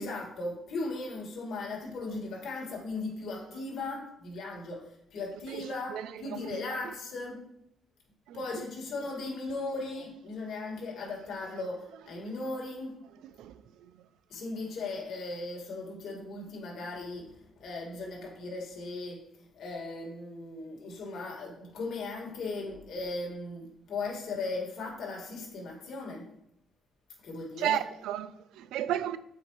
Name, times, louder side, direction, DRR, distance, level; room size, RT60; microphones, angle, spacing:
voice 1, 0.0-7.4 8.3-13.0 14.3-26.3 27.2-27.8, left 3 dB, 70° left, 2.1 m, -37 dB
voice 2, 5.5-6.8 8.3-8.6 13.4-13.9 27.6-29.2, right 11 dB, 90° right, 0.3 m, -34 dB
7.3 x 5.1 x 3.2 m
cardioid pair, 90°, 0 cm